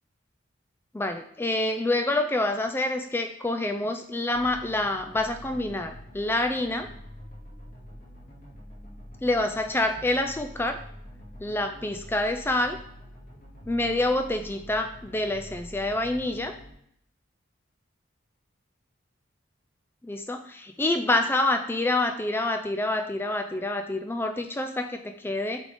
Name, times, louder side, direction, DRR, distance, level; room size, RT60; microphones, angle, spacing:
voice 1, 0.9-6.9 9.2-10.8 11.4-12.8 13.7-16.5 20.0-25.6, left 2 dB, 10° left, 5 dB, 0.3 m, -27 dB
sound 1, 4.3-16.7, equal, 40° left, 2.1 m, -46 dB
8.4 x 3.5 x 3.8 m, 0.68 s
head